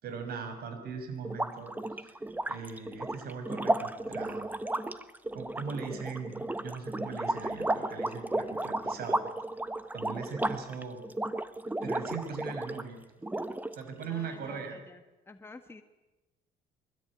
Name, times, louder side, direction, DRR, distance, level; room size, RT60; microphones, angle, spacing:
voice 1, 0.0-1.7 2.0-2.2 2.5-4.5 5.3-9.2 9.9-11.0 11.8-13.0 13.7-14.8, right 5 dB, 65° right, 7 dB, 6.4 m, -40 dB
sound 1, 1.2-12.9 13.2-14.0, right 1 dB, 10° right, 1.3 m, -33 dB
voice 2, 14.0-15.8, left 3 dB, 15° left, 6 dB, 1.6 m, -50 dB
24.0 x 21.5 x 9.9 m, 1.1 s
cardioid pair, 110°, 17 cm